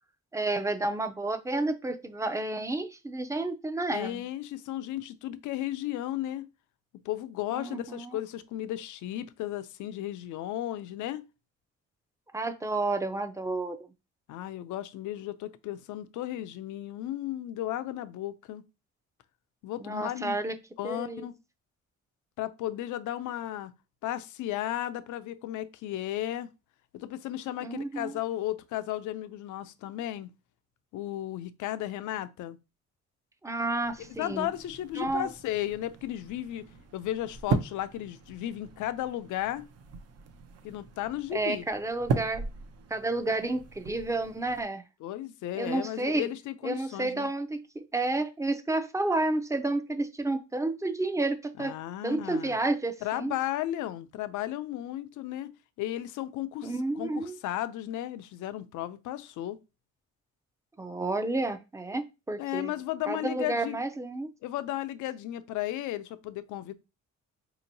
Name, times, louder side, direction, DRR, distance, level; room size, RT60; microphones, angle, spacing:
voice 1, 0.3-4.2 7.5-8.2 12.3-13.8 19.8-20.6 20.8-21.3 27.6-28.1 33.4-34.5 35.0-35.3 41.3-42.5 42.9-44.8 45.5-46.3 46.6-51.8 52.0-53.3 56.6-57.4 60.8-62.7 63.1-64.3, right 2 dB, 10° right, 0.5 m, -31 dB
voice 2, 3.9-6.5 7.1-11.3 14.3-18.6 19.6-20.4 20.8-21.3 22.4-23.7 24.0-26.5 26.9-30.3 30.9-32.6 34.2-36.6 36.9-39.7 40.6-41.7 45.0-47.3 51.6-52.6 53.0-55.5 55.8-59.6 62.4-63.8 64.4-66.7, left 13 dB, 80° left, 0.5 m, -34 dB
sound 1, 33.8-44.7, right 5 dB, 55° right, 0.6 m, -38 dB
4.3 x 2.9 x 2.7 m
cardioid pair, 90°, 30 cm